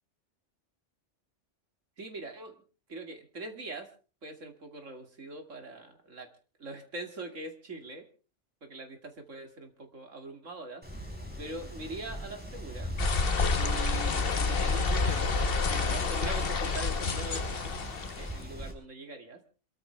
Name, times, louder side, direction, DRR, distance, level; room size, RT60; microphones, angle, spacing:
voice 1, 2.0-2.6 2.9-3.9 4.2-6.3 6.6-8.1 8.6-10.9 11.4-12.9 13.5-15.4 15.7-17.7 18.2-19.4, right 2 dB, 85° right, 5 dB, 2.9 m, -42 dB
Wind, 10.8-18.7, equal, 5° right, 4.9 m, -38 dB
sound 1, 13.0-18.4, left 4 dB, 50° left, 1.3 m, -29 dB
26.5 x 14.0 x 3.4 m, 0.37 s
omnidirectional pair, 1.3 m